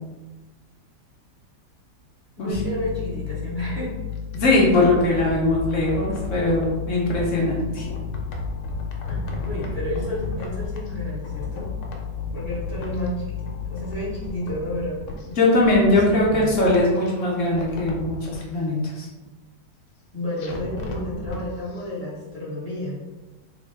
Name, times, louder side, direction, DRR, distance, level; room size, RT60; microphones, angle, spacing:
voice 1, 2.4-3.9 9.0-11.7 12.3-15.0 16.0-16.6 20.1-23.0, left 1 dB, 25° left, -9 dB, 1.1 m, -31 dB
sound 1, 2.5-15.7, left 8 dB, 80° right, 1.4 m, -33 dB
sound 2, 4.1-7.3 7.8-11.0 11.2-13.1 13.4-15.3 15.6-17.1 17.5-18.4 20.4-21.4 21.7-21.8, left 1 dB, 90° left, 1.3 m, -35 dB
voice 2, 4.3-7.9 15.4-19.1, left 2 dB, 55° left, -4 dB, 1.0 m, -20 dB
3.7 x 2.1 x 3.2 m, 1.2 s
omnidirectional pair, 1.8 m